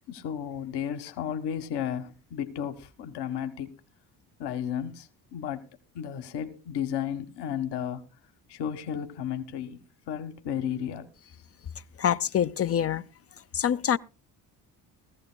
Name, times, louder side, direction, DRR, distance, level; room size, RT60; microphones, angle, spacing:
voice 1, 0.1-3.8 4.4-5.6 5.9-8.0 8.5-9.8 10.1-11.1, left 9 dB, 65° left, 1.4 m, -33 dB
voice 2, 12.0-13.0 13.5-14.0, left 9 dB, 35° left, 0.5 m, -25 dB
20.5 x 14.5 x 2.2 m
supercardioid pair, 75°, 43 cm